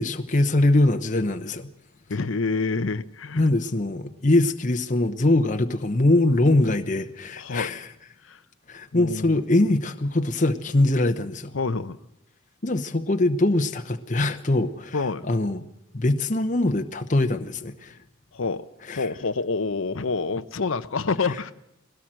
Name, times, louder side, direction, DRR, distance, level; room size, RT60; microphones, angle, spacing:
voice 1, 0.0-1.7 3.3-7.9 8.7-11.5 12.6-15.6 15.9-18.0 18.8-19.1, left 2 dB, 35° left, 7 dB, 0.9 m, -22 dB
voice 2, 2.1-3.4 7.4-7.7 8.3-8.4 8.9-9.4 11.5-12.0 14.9-15.2 18.3-18.6 18.9-21.5, left 4 dB, 75° left, 12 dB, 0.8 m, -27 dB
20.5 x 17.5 x 7.6 m, 0.83 s
head